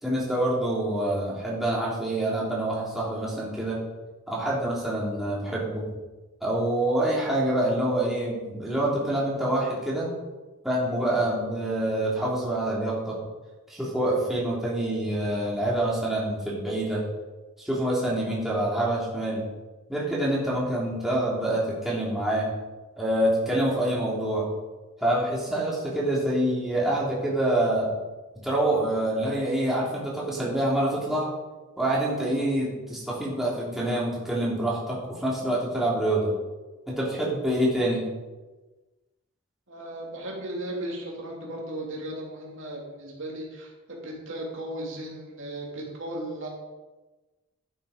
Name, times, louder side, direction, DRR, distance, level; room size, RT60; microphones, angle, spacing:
voice 1, 0.0-3.8 4.3-5.9 6.4-10.1 10.6-13.2 13.7-17.0 17.6-19.4 19.9-22.5 23.0-24.5 25.0-27.9 28.4-31.3 31.8-36.3 36.9-38.1, right 1 dB, ahead, -7 dB, 3.3 m, -26 dB
voice 2, 39.7-46.5, right 1 dB, 60° right, -2 dB, 3.1 m, -36 dB
12.5 x 9.2 x 5.3 m, 1.2 s
head